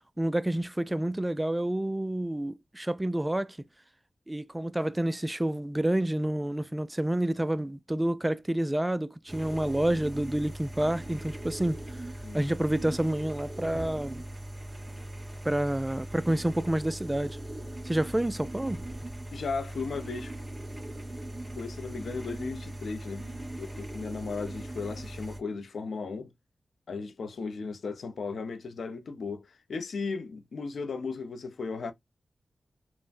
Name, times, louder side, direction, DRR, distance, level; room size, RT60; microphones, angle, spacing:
voice 1, 0.2-3.6 4.3-11.8 12.3-14.2 15.4-17.4 17.8-18.8, right 1 dB, 15° right, 0.3 m, -29 dB
sound 1, 9.3-25.4, right 1 dB, 35° right, 1.0 m, -40 dB
voice 2, 19.3-20.3 21.6-23.2 23.6-26.3 26.9-31.9, left 4 dB, 75° left, 0.6 m, -36 dB
3.4 x 2.1 x 2.5 m
cardioid pair, 45°, 0 cm